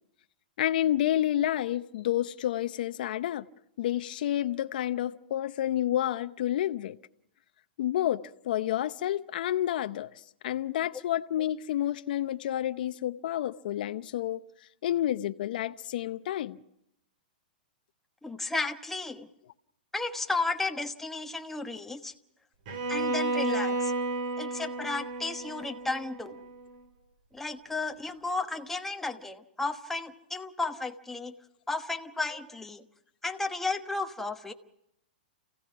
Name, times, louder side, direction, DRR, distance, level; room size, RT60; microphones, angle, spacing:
voice 1, 0.6-3.5 3.8-7.0 7.8-10.1 10.4-14.4 14.8-16.6, left 12 dB, 65° left, 0.7 m, -29 dB
voice 2, 18.2-19.3 19.9-22.1 22.9-23.9 24.4-26.4 27.3-31.3 31.7-32.8 33.2-34.5, left 3 dB, 5° left, 1.2 m, -33 dB
Bowed string instrument, 22.7-26.7, right 2 dB, 55° right, 4.9 m, -32 dB
28.5 x 16.5 x 5.9 m
hypercardioid pair, 135°, 5 cm